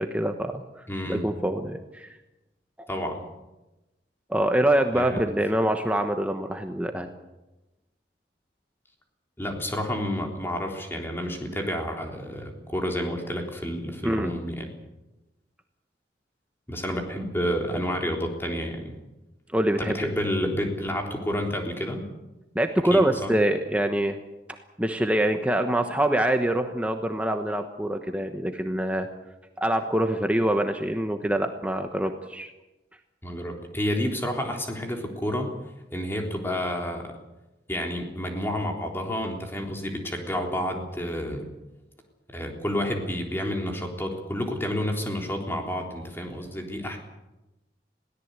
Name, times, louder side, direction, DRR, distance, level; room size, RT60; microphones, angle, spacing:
voice 1, 0.0-2.1 4.3-7.1 14.0-14.3 19.5-19.9 22.5-24.2 24.8-29.1 29.6-32.5, right 1 dB, 10° right, 5 dB, 1.1 m, -25 dB
voice 2, 0.9-1.3 2.9-3.2 4.9-5.2 9.4-14.7 16.7-19.0 19.8-22.0 22.9-23.3 33.2-35.5 35.9-37.1 37.7-41.5 42.3-47.0, equal, 15° left, 2 dB, 3.5 m, -30 dB
22.0 x 17.5 x 8.2 m, 1.0 s
head